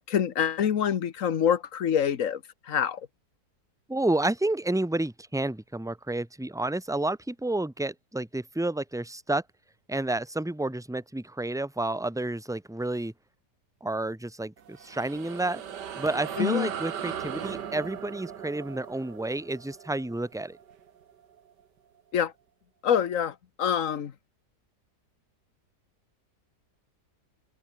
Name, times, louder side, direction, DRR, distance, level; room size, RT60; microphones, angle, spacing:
voice 1, 0.0-2.4 2.7-3.1 16.4-16.7 22.1-22.3 22.8-24.1, left 8 dB, 55° left, 1.3 m, -26 dB
voice 2, 3.9-9.4 9.9-13.1 13.8-15.6 16.0-20.6, right 2 dB, ahead, 1.0 m, -30 dB
sound 1, 14.6-21.4, right 8 dB, 80° right, 2.0 m, -38 dB
open air
omnidirectional pair, 1.8 m